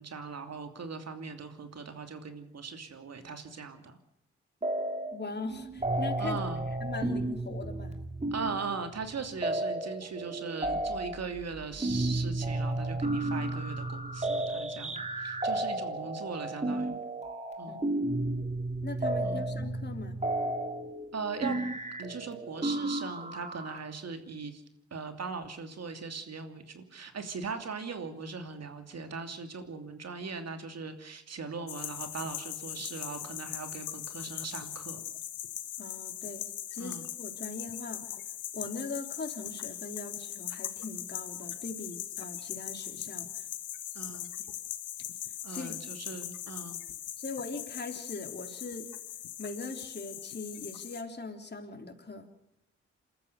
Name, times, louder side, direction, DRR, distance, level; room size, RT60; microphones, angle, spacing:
voice 1, 0.0-3.9 6.2-6.6 8.3-17.0 17.6-17.8 19.2-19.5 21.1-21.6 22.0-24.6 24.9-35.0 36.8-37.1 43.9-44.3 45.4-46.8, right 5 dB, 55° right, 7 dB, 2.9 m, -39 dB
sound 1, 4.6-5.2 5.5-23.8, right 2 dB, 20° right, 3.2 m, -33 dB
voice 2, 5.1-6.4 6.8-8.0 17.7-18.2 18.8-20.2 35.8-36.4 36.7-38.0 38.5-43.5 45.5-45.8 47.2-48.9 49.4-52.3, left 3 dB, 35° left, 5 dB, 3.7 m, -40 dB
sound 2, 31.7-51.0, left 11 dB, 75° left, 1.4 m, -40 dB
28.0 x 14.0 x 6.9 m, 0.81 s
hypercardioid pair, 40°, 30 cm